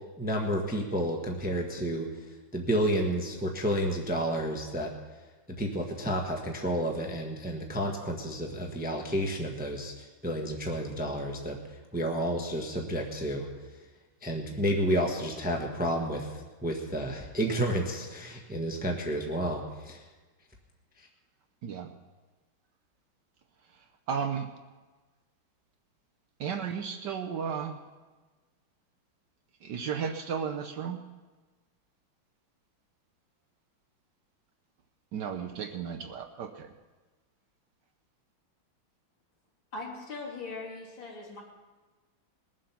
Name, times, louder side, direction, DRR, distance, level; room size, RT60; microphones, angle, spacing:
voice 1, 0.2-2.1 2.5-4.9 5.6-11.6 11.9-13.5 14.2-16.3 16.6-20.0, equal, 5° right, 1 dB, 1.1 m, -30 dB
voice 2, 21.6-21.9 23.7-24.5 26.4-27.8 29.6-31.0 35.1-36.7, right 7 dB, 65° right, 5 dB, 1.3 m, -34 dB
voice 3, 39.7-41.4, left 3 dB, 65° left, -3 dB, 3.7 m, -40 dB
21.0 x 7.6 x 5.8 m, 1.3 s
omnidirectional pair, 2.3 m